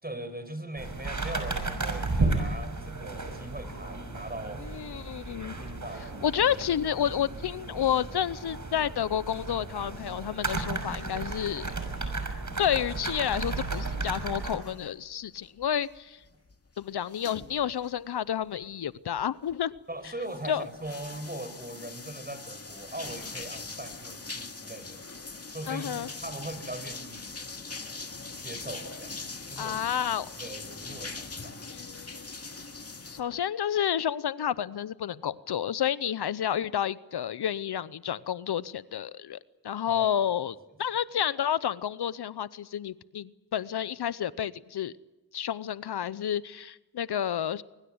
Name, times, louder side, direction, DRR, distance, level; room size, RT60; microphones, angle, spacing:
voice 1, 0.0-4.8 5.4-6.3 19.9-25.0 25.5-26.0 26.2-27.4 28.4-29.1 29.5-29.8 30.4-31.8 39.9-40.1, right 1 dB, 25° right, 10 dB, 5.6 m, -40 dB
sound 1, 0.8-14.6, right 3 dB, 45° right, 6.1 m, -34 dB
voice 2, 4.6-5.6 6.2-11.7 12.6-16.2 16.8-19.7 20.4-20.7 25.7-26.1 29.6-30.3 31.7-32.3 33.1-39.4 39.6-44.9 45.3-47.6, left 9 dB, 75° left, 18 dB, 0.8 m, -30 dB
sound 2, 13.4-15.1 15.4-18.0 18.4-18.7 19.2-19.8 20.2-33.2, left 3 dB, 35° left, 2.3 m, -42 dB
24.0 x 23.0 x 8.0 m, 1.1 s
cardioid pair, 45°, 40 cm